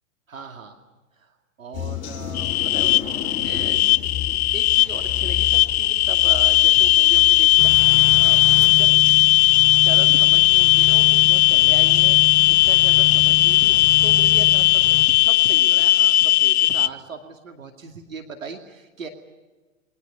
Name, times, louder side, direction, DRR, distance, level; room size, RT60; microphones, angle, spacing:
voice 1, 0.3-0.8 1.2-3.8 4.5-8.4 8.7-8.9 9.8-19.1, right 5 dB, 80° right, 4 dB, 2.6 m, -38 dB
sound 1, 1.7-14.7, left 9 dB, 30° left, 5.1 m, -36 dB
sound 2, 2.4-16.9, left 16 dB, 55° left, 0.7 m, -17 dB
sound 3, 7.6-15.1, left 8 dB, 5° left, 5.7 m, -31 dB
29.0 x 23.0 x 5.5 m, 1.2 s
figure-of-eight pair, 105°, 39 cm